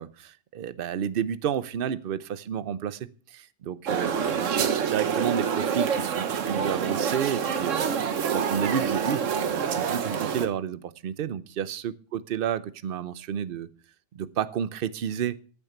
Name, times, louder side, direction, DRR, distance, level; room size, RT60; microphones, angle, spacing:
voice 1, 0.0-13.7 14.1-15.5, right 9 dB, 55° right, 16 dB, 0.8 m, -31 dB
sound 1, 3.9-10.5, right 7 dB, 75° right, 1.3 m, -27 dB
14.0 x 7.2 x 5.8 m, 0.41 s
omnidirectional pair, 1.3 m